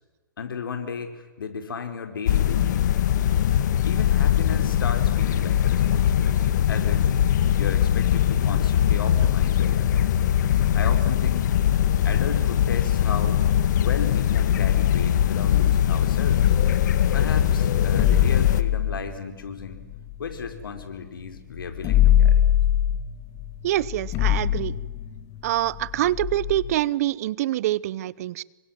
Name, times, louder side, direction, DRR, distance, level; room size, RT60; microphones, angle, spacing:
voice 1, 0.4-2.9 3.8-7.0 7.6-10.0 10.5-11.5 12.0-13.4 13.7-16.5 17.1-19.9 20.2-22.4, left 5 dB, 80° left, 6 dB, 5.0 m, -34 dB
sound 1, 2.3-18.6, left 10 dB, 55° left, 2.0 m, -21 dB
sound 2, 17.8-21.0 21.3-21.4 21.6-26.7, left 11 dB, 25° left, 2.1 m, -23 dB
voice 2, 23.6-24.8 25.4-28.4, right 14 dB, 45° right, 22 dB, 0.8 m, -25 dB
28.5 x 25.0 x 7.6 m, 1.2 s
hypercardioid pair, 145°, 11 cm